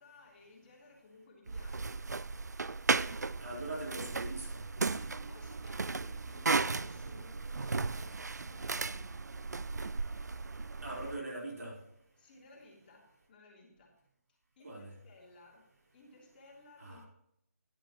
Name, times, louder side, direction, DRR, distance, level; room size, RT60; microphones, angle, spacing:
voice 1, 0.0-2.0 4.9-9.2 10.8-10.9 11.5-11.6 12.2-14.0 14.3-15.6 15.9-17.0, left 3 dB, 35° left, -2 dB, 3.1 m, -59 dB
sound 1, 1.5-11.2, right 4 dB, 85° right, 0.5 m, -35 dB
voice 2, 3.4-4.6 10.8-11.8 14.6-14.9 16.8-17.0, right 2 dB, 65° right, -2 dB, 4.3 m, -41 dB
11.0 x 10.0 x 3.0 m, 0.78 s
figure-of-eight pair, 155°, 9 cm